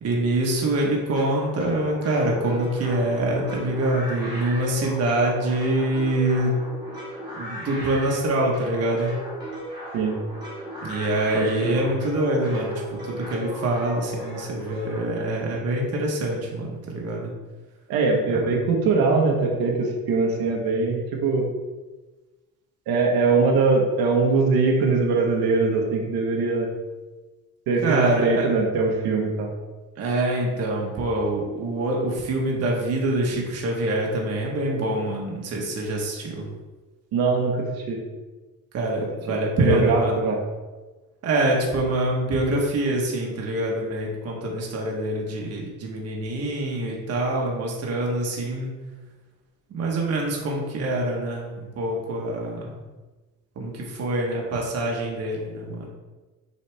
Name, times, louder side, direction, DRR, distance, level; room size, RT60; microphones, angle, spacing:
voice 1, 0.0-6.6 7.4-9.1 10.8-17.3 27.8-28.5 30.0-36.5 38.7-40.2 41.2-48.7 49.7-52.8 53.6-55.9, right 1 dB, 45° right, -1 dB, 1.2 m, -25 dB
sound 1, 1.2-15.0, equal, 10° right, 1.6 m, -36 dB
voice 2, 11.3-11.8 17.9-21.5 22.9-26.7 27.7-29.5 37.1-38.0 39.6-40.4, right 4 dB, 85° right, 0 dB, 1.2 m, -22 dB
6.9 x 4.2 x 3.4 m, 1.2 s
cardioid pair, 170°, 35 cm